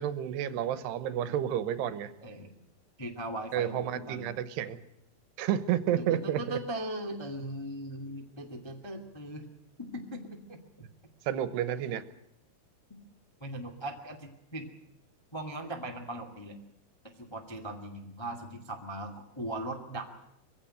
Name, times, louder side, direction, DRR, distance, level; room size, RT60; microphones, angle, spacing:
voice 1, 0.0-2.1 3.5-4.8 5.4-6.6 11.2-12.0, right 10 dB, 90° right, 13 dB, 3.2 m, -30 dB
voice 2, 3.0-4.3 6.0-9.5 9.8-10.6 13.4-14.7 15.3-16.6 17.1-20.2, right 1 dB, 15° left, 2 dB, 0.8 m, -39 dB
22.5 x 16.0 x 9.0 m, 0.81 s
omnidirectional pair, 4.7 m